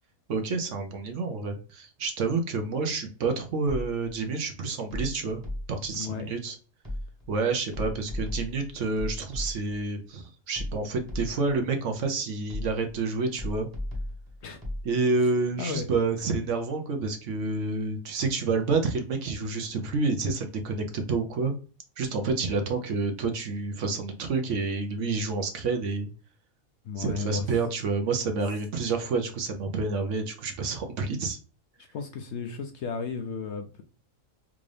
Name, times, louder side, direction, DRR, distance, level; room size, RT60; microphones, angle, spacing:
voice 1, 0.3-5.4 5.7-6.6 7.3-13.7 14.8-21.5 22.0-26.1 27.0-31.4, right 4 dB, 65° right, 1.0 m, -29 dB
sound 1, 3.7-4.2 4.9-6.0 6.8-7.4 7.7-9.9 10.6-11.6 12.5-13.0 13.4-14.9, left 1 dB, 15° right, 0.9 m, -36 dB
voice 2, 5.9-6.3 14.4-14.6 15.6-15.9 26.8-27.5 31.9-33.8, left 5 dB, 65° left, 0.7 m, -34 dB
3.6 x 2.5 x 3.2 m
omnidirectional pair, 1.5 m